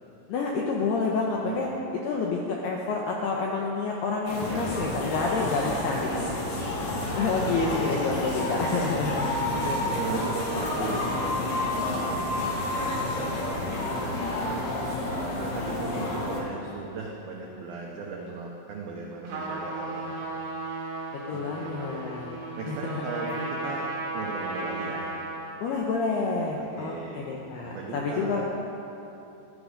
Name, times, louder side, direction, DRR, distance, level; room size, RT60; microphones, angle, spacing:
voice 1, 0.3-1.7 2.0-6.3 7.2-9.3 21.3-22.4 22.7-23.0 25.6-28.4, left 4 dB, 80° left, -1 dB, 2.3 m, -28 dB
voice 2, 1.4-1.8 4.4-5.2 6.3-7.4 8.4-9.1 9.5-14.7 15.1-20.3 21.3-22.2 22.6-23.9 24.1-25.1 26.6-27.4 27.6-28.4, right 4 dB, 90° right, -1 dB, 2.1 m, -38 dB
sound 1, 4.3-16.4, left 2 dB, 55° left, 2.7 m, -29 dB
Trumpet, 19.2-25.5, right 2 dB, 45° right, 3.1 m, -35 dB
15.0 x 14.0 x 5.1 m, 3.0 s
omnidirectional pair, 6.0 m